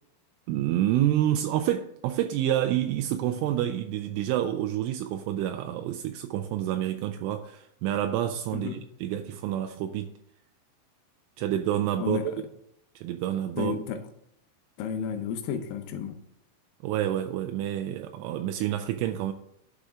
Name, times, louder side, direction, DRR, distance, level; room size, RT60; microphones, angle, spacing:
voice 1, 0.5-8.7 9.0-10.1 11.4-12.2 13.0-13.7 16.8-19.3, right 12 dB, 85° right, 2.9 m, -28 dB
voice 2, 8.5-8.8 12.0-12.4 13.6-14.0 14.8-16.2, left 6 dB, 90° left, 3.6 m, -32 dB
11.5 x 6.2 x 3.6 m
omnidirectional pair, 5.8 m